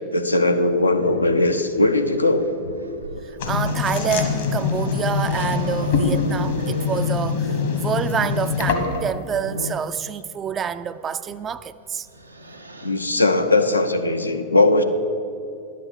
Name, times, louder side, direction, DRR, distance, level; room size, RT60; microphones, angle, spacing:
voice 1, 0.1-2.5 12.8-14.8, left 2 dB, 85° left, 0.7 m, -19 dB
Growling, 0.9-9.9 11.3-11.5 11.9-13.0, right 1 dB, 85° right, 0.6 m, -36 dB
voice 2, 3.2-12.1, right 7 dB, 25° right, 0.4 m, -27 dB
sound 1, 3.4-9.1, left 5 dB, 60° left, 1.5 m, -24 dB
11.0 x 6.7 x 6.5 m
figure-of-eight pair, 90°, 0 cm